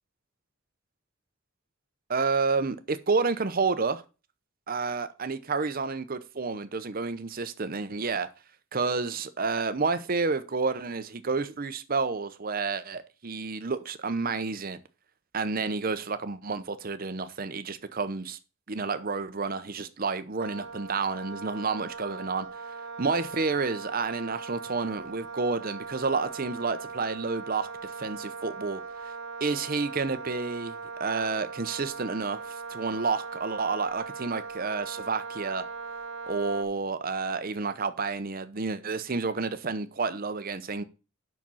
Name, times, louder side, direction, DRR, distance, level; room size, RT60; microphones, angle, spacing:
voice 1, 2.1-4.0 4.7-8.3 8.7-14.8 15.3-18.4 18.7-22.5 23.0-28.8 29.4-35.6 36.3-40.8, right 4 dB, 45° right, 0.8 m, -30 dB
Wind instrument woodwind instrument, 20.4-36.6, right 4 dB, 80° right, 0.9 m, -40 dB
7.6 x 6.0 x 5.5 m
head